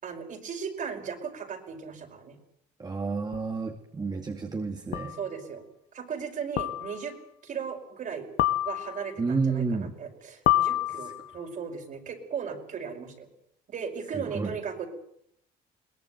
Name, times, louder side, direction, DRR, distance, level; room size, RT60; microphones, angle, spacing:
voice 1, 0.0-2.4 5.2-5.6 5.9-7.2 7.4-8.3 8.6-13.3 13.7-14.9, right 6 dB, 50° right, 4 dB, 5.5 m, -37 dB
voice 2, 2.8-5.2 9.2-10.0 14.1-14.5, right 4 dB, 25° right, 3 dB, 2.4 m, -30 dB
sound 1, 3.3-3.4 4.9-5.3 6.6-7.1 8.4-9.2 10.5-11.4, left 14 dB, 75° left, 1.4 m, -27 dB
22.5 x 19.0 x 9.3 m, 0.72 s
cardioid pair, 110°, 17 cm